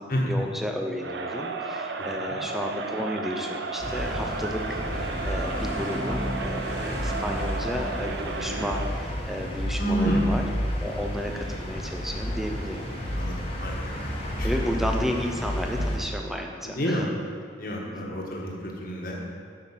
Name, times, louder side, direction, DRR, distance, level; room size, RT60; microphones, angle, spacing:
voice 1, 0.0-10.5 10.8-12.9 14.4-17.1 17.9-18.2, equal, ahead, 2 dB, 0.6 m, -33 dB
Crowd, 1.0-9.1, right 3 dB, 70° right, 0.6 m, -33 dB
sound 1, 3.8-16.0, equal, 30° left, 1.3 m, -31 dB
voice 2, 9.8-10.4 13.1-13.9 14.4-14.6 16.6-17.0 17.6-19.3, equal, 50° left, -2 dB, 1.4 m, -29 dB
8.0 x 5.9 x 5.8 m, 2.1 s
head